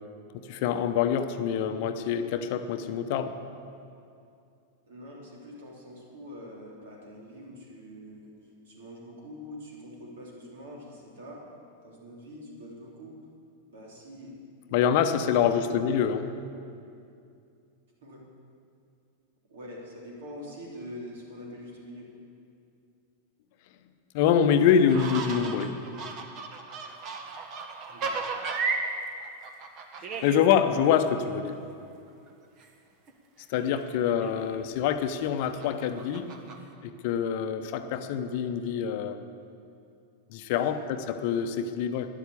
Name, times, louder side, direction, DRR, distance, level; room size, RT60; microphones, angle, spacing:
voice 1, 0.5-3.3 14.7-16.3 24.1-25.8 30.2-31.6 33.5-36.3 36.8-39.2 40.3-42.1, left 8 dB, 50° left, 8 dB, 0.8 m, -25 dB
voice 2, 4.9-8.3 8.6-11.4 11.8-13.2 13.7-14.3 14.9-15.7 18.0-18.2 19.5-22.1 27.9-28.1 33.7-34.0 37.8-38.1 40.5-40.9, equal, 60° right, -2 dB, 3.3 m, -45 dB
sound 1, 24.9-28.9 29.2-30.5 30.9-31.0 32.3-32.4 32.6-32.7 33.1-33.2 33.6-33.8 34.2-34.8 35.6-36.6, right 4 dB, 35° right, 1.4 m, -34 dB
12.5 x 10.5 x 8.3 m, 2.5 s
figure-of-eight pair, 90°, 0 cm